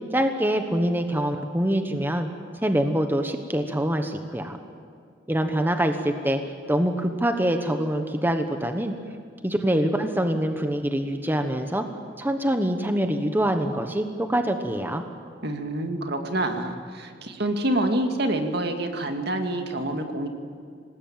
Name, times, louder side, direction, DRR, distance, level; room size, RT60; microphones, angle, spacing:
voice 1, 0.1-2.3 2.6-4.6 5.3-6.4 6.7-8.9 9.4-11.8 12.2-15.0, right 1 dB, 10° right, 6 dB, 1.2 m, -25 dB
voice 2, 15.4-20.3, right 1 dB, 60° right, 5 dB, 2.3 m, -27 dB
25.5 x 19.5 x 8.9 m, 2.2 s
head